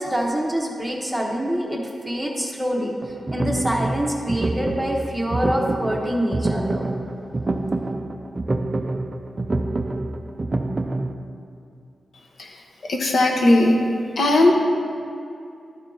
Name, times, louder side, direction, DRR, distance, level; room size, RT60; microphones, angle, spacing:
voice 1, 0.0-6.9, equal, 5° right, -1 dB, 0.9 m, -25 dB
sound 1, 3.0-11.1, right 2 dB, 25° right, 0.4 m, -27 dB
voice 2, 12.9-13.8 14.2-14.5, left 2 dB, 60° left, 1 dB, 1.0 m, -17 dB
12.0 x 4.4 x 3.8 m, 2.5 s
wide cardioid pair, 150°, 0 cm